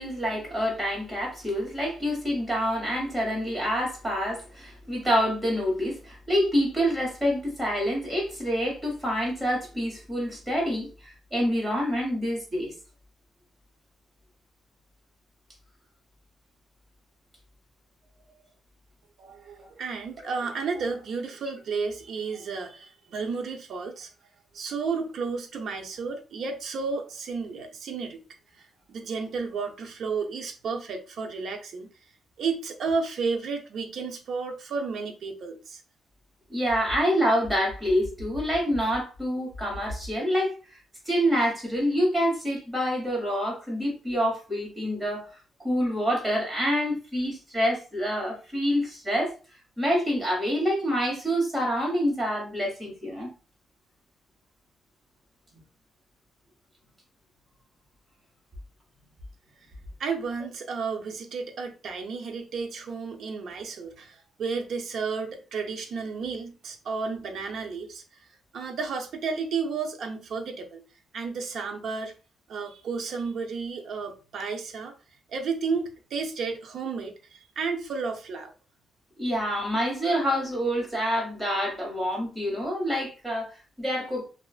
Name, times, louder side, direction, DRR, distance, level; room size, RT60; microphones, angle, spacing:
voice 1, 0.0-12.7 36.5-40.5 41.0-45.3 45.6-49.3 49.8-53.3 79.2-84.3, equal, 10° right, 1.4 m, -27 dB
voice 2, 19.2-24.1 24.5-28.2 28.6-31.9 32.4-35.8 60.0-68.0 68.5-70.8 71.1-72.1 72.5-74.9 75.3-78.5, right 5 dB, 60° right, 0.5 m, -32 dB
3.0 x 2.4 x 2.4 m
cardioid pair, 145°, 0 cm